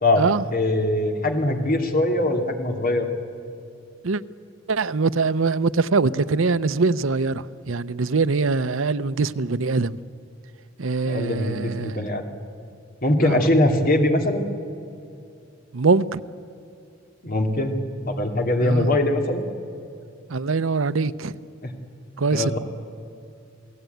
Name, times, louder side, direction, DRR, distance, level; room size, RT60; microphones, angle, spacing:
voice 1, 0.0-3.1 11.0-12.2 13.0-14.4 17.2-19.4 21.6-21.7 22.3-22.6, left 1 dB, 45° left, 2.6 m, -22 dB
voice 2, 4.7-10.0 10.8-12.0 13.2-13.4 15.7-16.2 18.6-18.9 20.3-21.4 22.2-22.6, right 4 dB, 80° right, 0.7 m, -23 dB
28.5 x 18.0 x 9.3 m
head